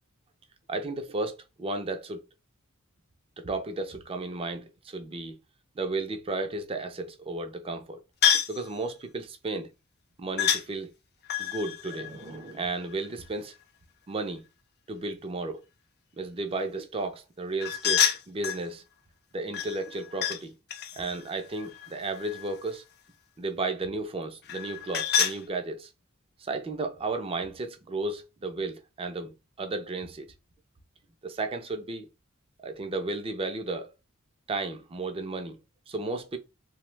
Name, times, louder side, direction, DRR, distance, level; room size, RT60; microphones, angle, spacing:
voice 1, 0.7-2.2 3.4-5.4 5.8-8.0 8.5-9.7 10.2-10.9 11.4-13.5 14.1-14.5 14.9-15.6 16.2-18.8 19.3-20.5 21.0-22.8 23.4-25.9 26.4-30.3 31.2-32.1 32.6-33.9 34.5-35.6 35.9-36.4, right 3 dB, 25° right, 0.4 m, -33 dB
sound 1, 8.2-8.6 10.4-10.6 11.3-13.1 17.6-18.6 19.5-20.4 20.7-22.6 24.5-25.4, left 9 dB, 50° left, 0.4 m, -28 dB
2.7 x 2.0 x 3.1 m
head